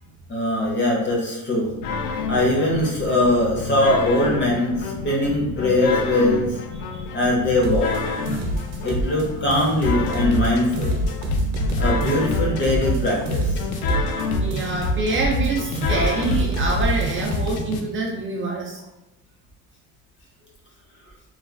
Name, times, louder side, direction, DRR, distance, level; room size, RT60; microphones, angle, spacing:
voice 1, 0.3-1.7 2.3-6.6 7.1-7.9 8.8-11.0 11.8-13.5, left 1 dB, 35° left, -3 dB, 0.9 m, -21 dB
sound 1, 1.8-17.8, left 2 dB, 80° left, 0.5 m, -27 dB
sound 2, 7.6-9.3 9.5-10.5 10.8-14.3 14.5-15.5 15.8-17.6, right 1 dB, 75° right, 0.7 m, -28 dB
voice 2, 14.4-18.8, right 3 dB, 35° right, -1 dB, 0.4 m, -26 dB
3.1 x 2.4 x 2.3 m, 0.95 s
cardioid pair, 125°, 34 cm